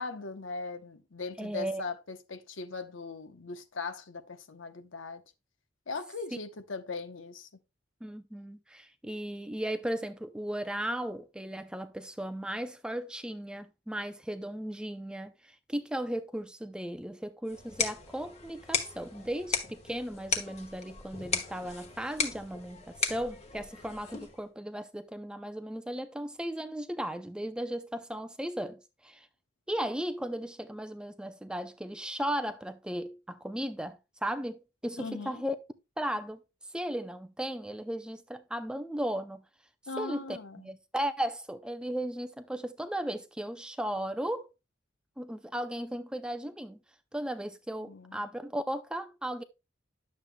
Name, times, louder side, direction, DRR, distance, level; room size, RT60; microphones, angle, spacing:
voice 1, 0.0-5.2 5.9-7.5 35.0-35.4 39.9-40.7 47.9-48.2, left 4 dB, 80° left, 0.9 m, -39 dB
voice 2, 1.4-1.8 8.0-29.3 29.7-35.6 36.0-36.4 36.7-39.4 40.0-44.5 45.2-46.8 47.1-49.4, right 1 dB, 5° right, 0.4 m, -36 dB
sound 1, 17.5-24.4, left 5 dB, 35° left, 1.2 m, -36 dB
11.0 x 7.3 x 2.2 m
head